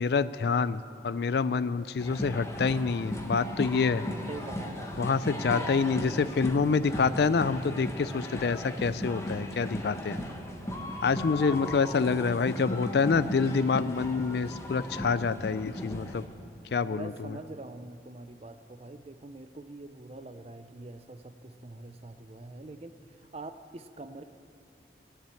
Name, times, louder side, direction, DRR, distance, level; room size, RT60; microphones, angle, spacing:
voice 1, 0.0-4.0 5.0-10.2 11.0-16.2 16.7-17.4, left 5 dB, 60° left, 15 dB, 0.4 m, -27 dB
sound 1, 2.0-16.2, left 1 dB, 15° left, 1.0 m, -37 dB
voice 2, 4.1-5.0 5.4-6.3 11.6-12.4 16.8-24.2, right 2 dB, 35° right, 10 dB, 0.5 m, -44 dB
15.5 x 7.5 x 8.4 m, 2.7 s
head